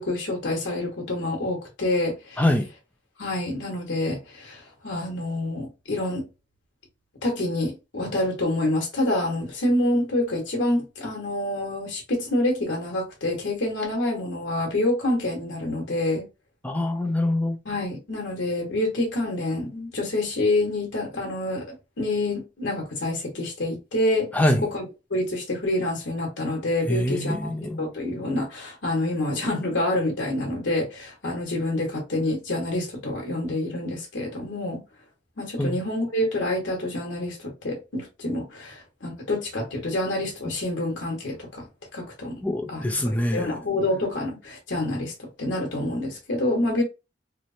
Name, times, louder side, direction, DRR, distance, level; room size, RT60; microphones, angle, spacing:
voice 1, 0.0-2.4 3.2-6.3 7.2-16.3 17.6-24.3 24.6-27.5 27.8-34.8 35.4-41.7 41.9-42.4 42.7-42.9 43.3-46.8, left 1 dB, 85° left, 1.0 m, -27 dB
voice 2, 16.6-17.6 24.3-24.7 26.9-27.9 35.6-35.7 42.4-43.5, left 1 dB, 10° left, 0.4 m, -24 dB
3.0 x 2.0 x 2.5 m
head